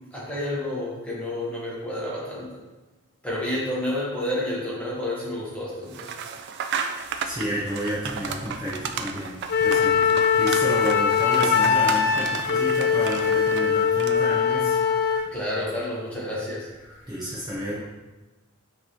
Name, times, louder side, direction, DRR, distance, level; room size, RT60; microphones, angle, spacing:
voice 1, 0.1-2.6 3.2-6.1 8.9-9.0 9.9-10.3 15.3-16.7, left 1 dB, 5° left, -6 dB, 1.1 m, -30 dB
sound 1, 5.9-14.4, right 6 dB, 55° right, 0.3 m, -34 dB
voice 2, 7.2-15.3 16.9-17.8, equal, 20° right, -7 dB, 0.7 m, -31 dB
Wind instrument woodwind instrument, 9.5-15.3, left 7 dB, 50° left, 0.3 m, -21 dB
5.6 x 3.0 x 2.9 m, 1.2 s
head